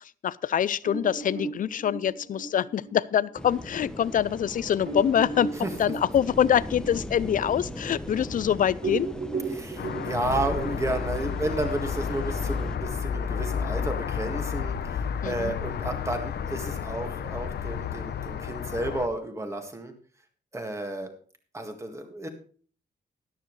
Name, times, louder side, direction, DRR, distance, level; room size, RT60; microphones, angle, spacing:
voice 1, 0.0-5.5 5.8-9.1 15.2-15.5, left 9 dB, 50° left, 20 dB, 0.4 m, -25 dB
sound 1, 0.8-3.9 4.4-4.5 4.8-8.4 8.7-12.9, right 4 dB, 90° right, 7.6 m, -36 dB
sound 2, 3.4-12.8, left 1 dB, 5° left, 0.9 m, -39 dB
voice 2, 9.5-19.9 20.5-21.1 21.5-22.3, right 2 dB, 15° right, 5 dB, 1.8 m, -32 dB
sound 3, 9.8-19.1, left 7 dB, 70° left, 0.8 m, -31 dB
13.0 x 12.0 x 3.2 m, 0.42 s
wide cardioid pair, 175°, 18 cm